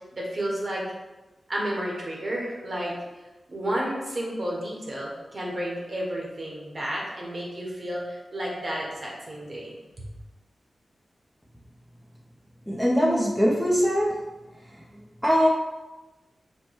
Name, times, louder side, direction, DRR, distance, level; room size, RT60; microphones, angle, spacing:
voice 1, 0.1-0.8 1.5-2.9 3.5-9.7, right 1 dB, 45° right, -3 dB, 1.1 m, -31 dB
voice 2, 12.7-14.2 15.2-15.5, equal, ahead, -4 dB, 0.6 m, -21 dB
4.5 x 2.2 x 4.5 m, 1.1 s
wide cardioid pair, 105°, 0 cm